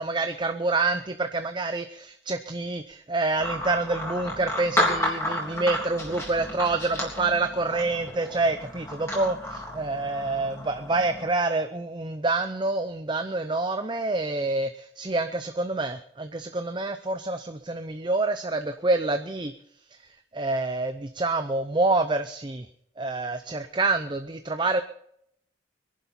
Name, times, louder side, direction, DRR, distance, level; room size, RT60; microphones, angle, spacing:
voice 1, 0.0-19.5 20.3-22.7 23.0-24.8, right 3 dB, 25° right, 8 dB, 0.6 m, -27 dB
sound 1, 3.4-11.3, left 1 dB, 15° left, 3.5 m, -32 dB
22.0 x 11.0 x 4.3 m, 0.70 s
head